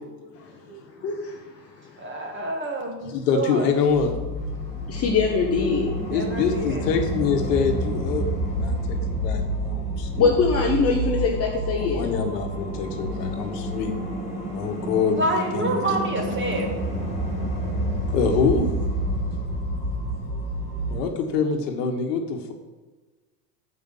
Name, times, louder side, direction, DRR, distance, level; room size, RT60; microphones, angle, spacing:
voice 1, 1.0-1.4 4.9-5.9 10.2-12.1, left 5 dB, 30° left, 0 dB, 1.1 m, -22 dB
voice 2, 2.0-3.7 6.0-6.8 15.2-16.7, right 1 dB, 25° right, 1 dB, 2.1 m, -28 dB
voice 3, 3.1-4.1 6.1-10.3 11.8-13.9 14.5-16.0 16.4-16.5 18.1-18.7 20.9-22.5, left 5 dB, 70° left, 4 dB, 1.7 m, -25 dB
sound 1, 3.9-21.0, right 1 dB, 15° left, 2.5 m, -29 dB
7.1 x 5.6 x 7.3 m, 1.3 s
hypercardioid pair, 105°, 49 cm